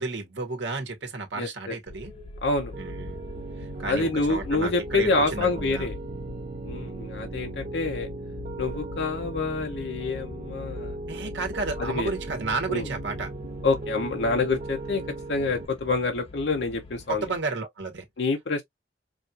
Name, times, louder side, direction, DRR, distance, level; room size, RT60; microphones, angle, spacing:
voice 1, 0.0-2.1 2.8-3.2 3.6-5.9 11.1-13.3 17.1-18.0, right 3 dB, 90° right, 1.3 m, -32 dB
voice 2, 1.4-1.8 2.4-2.7 3.8-5.9 6.6-8.1 8.6-11.0 11.8-12.1 12.7-12.9 13.6-15.0 15.3-17.2 18.2-18.6, left 3 dB, 75° left, 0.8 m, -27 dB
sound 1, 1.9-17.4, left 2 dB, 35° left, 0.8 m, -42 dB
Piano, 2.7-15.6, right 3 dB, 40° right, 0.4 m, -38 dB
5.0 x 2.5 x 2.7 m
head